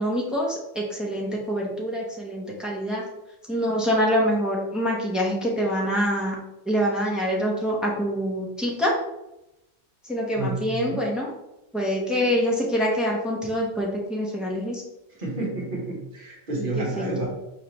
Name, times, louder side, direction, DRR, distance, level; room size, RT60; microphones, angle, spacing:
voice 1, 0.0-3.0 3.5-6.3 6.7-8.9 10.0-11.3 11.7-14.8 16.5-17.3, equal, ahead, -3 dB, 0.6 m, -25 dB
voice 2, 10.3-11.1 15.2-17.3, right 2 dB, 40° right, -3 dB, 1.4 m, -30 dB
4.6 x 3.3 x 3.0 m, 0.92 s
omnidirectional pair, 1.4 m